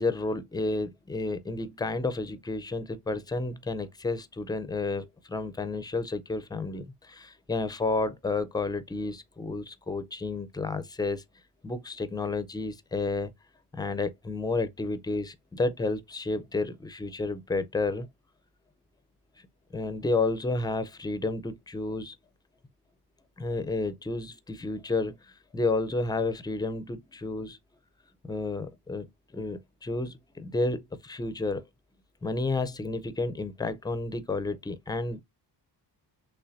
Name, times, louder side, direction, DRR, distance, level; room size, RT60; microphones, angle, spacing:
voice 1, 0.0-11.2 11.6-13.3 13.7-18.1 19.7-22.1 23.4-25.1 25.5-27.6 28.2-31.6 32.2-35.2, left 3 dB, 10° left, 0.4 m, -31 dB
5.6 x 3.4 x 2.5 m
wide cardioid pair, 170°, 41 cm